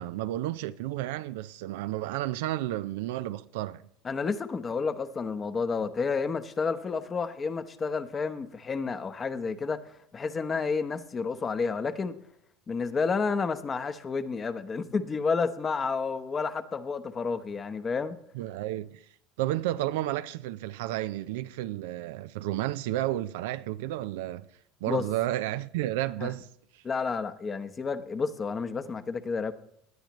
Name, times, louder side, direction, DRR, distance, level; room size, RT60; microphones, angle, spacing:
voice 1, 0.0-3.8 18.3-19.0 19.4-24.5 24.8-26.5, right 14 dB, 75° right, 0.5 m, -32 dB
voice 2, 4.0-12.1 12.7-18.2 24.9-25.0 26.2-26.3 26.8-29.5, left 5 dB, 30° left, 1.0 m, -30 dB
18.5 x 10.5 x 3.1 m
hypercardioid pair, 75°, 0 cm